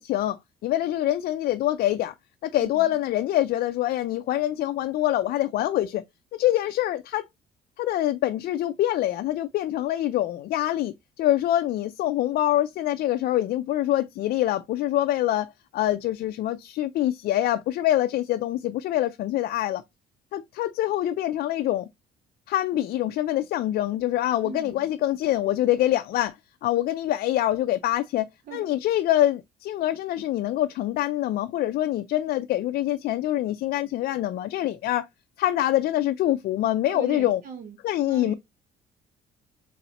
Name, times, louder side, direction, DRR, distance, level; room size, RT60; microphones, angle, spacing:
voice 1, 0.0-2.1 2.4-6.0 6.3-7.2 7.8-19.8 20.3-21.9 22.5-26.3 26.6-28.3 28.5-35.1 35.4-37.4 37.8-38.3, left 13 dB, 65° left, 0.4 m, -25 dB
voice 2, 2.6-3.0 24.4-24.9 28.5-28.7 36.9-38.3, right 6 dB, 55° right, 1.1 m, -40 dB
4.1 x 3.8 x 2.9 m
cardioid pair, 110°, 17 cm